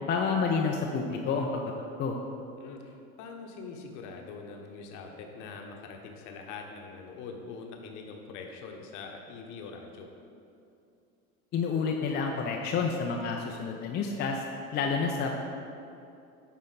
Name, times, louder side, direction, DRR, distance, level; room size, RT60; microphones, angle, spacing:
voice 1, 0.1-1.7 2.0-2.2 11.5-14.4 14.7-15.4, left 5 dB, 25° left, 0 dB, 0.5 m, -29 dB
voice 2, 2.6-10.1, left 4 dB, 45° left, 2 dB, 1.0 m, -43 dB
10.0 x 4.1 x 4.0 m, 2.6 s
figure-of-eight pair, 80°, 42 cm